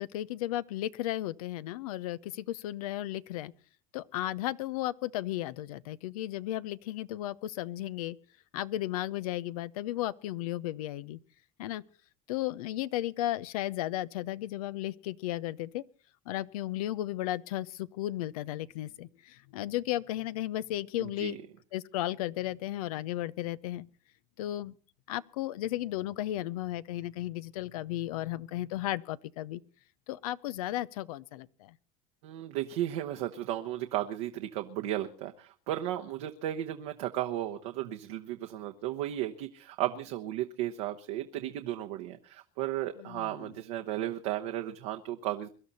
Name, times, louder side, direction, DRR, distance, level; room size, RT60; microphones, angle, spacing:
voice 1, 0.0-3.5 3.9-8.2 8.5-11.2 11.6-11.8 12.3-15.8 16.3-21.4 21.7-23.9 24.4-24.7 25.1-29.6 30.1-31.8 43.0-43.5, left 14 dB, 90° left, 0.7 m, -34 dB
voice 2, 21.0-21.4 32.2-45.5, right 13 dB, 80° right, 1.1 m, -34 dB
23.0 x 12.0 x 4.2 m
supercardioid pair, 100°, 18 cm